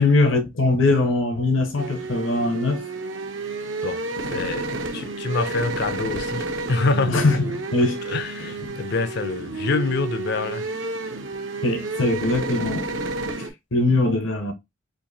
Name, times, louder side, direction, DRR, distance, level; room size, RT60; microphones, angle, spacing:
voice 1, 0.0-2.8 7.1-8.1 8.6-8.8 11.6-12.9 13.4-14.5, left 2 dB, 75° left, 0.9 m, -21 dB
sound 1, 1.8-13.5, right 2 dB, 70° right, 0.8 m, -30 dB
voice 2, 4.3-4.7 4.9-7.4 8.0-10.7, left 3 dB, 55° left, 0.5 m, -26 dB
4.4 x 2.6 x 2.7 m
head